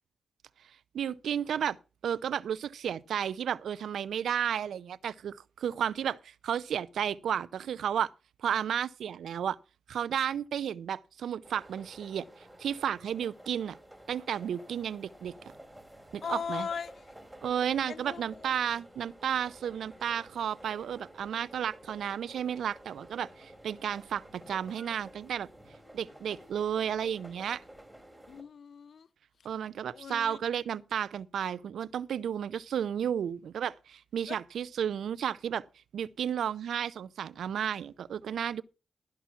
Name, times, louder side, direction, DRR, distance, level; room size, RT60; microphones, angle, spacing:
voice 1, 0.9-1.8 2.0-8.1 8.4-9.6 9.9-12.3 12.6-13.8 14.1-15.3 16.1-16.7 17.4-25.5 25.9-27.6 29.4-35.7 35.9-38.6, right 9 dB, 90° right, 0.5 m, -32 dB
sound 1, 11.4-28.4, right 1 dB, 10° right, 4.6 m, -52 dB
voice 2, 16.2-17.1 17.9-18.6 28.3-29.1 29.9-30.4 34.3-34.4, left 6 dB, 70° left, 0.6 m, -38 dB
15.5 x 5.8 x 5.8 m
cardioid pair, 45°, 0 cm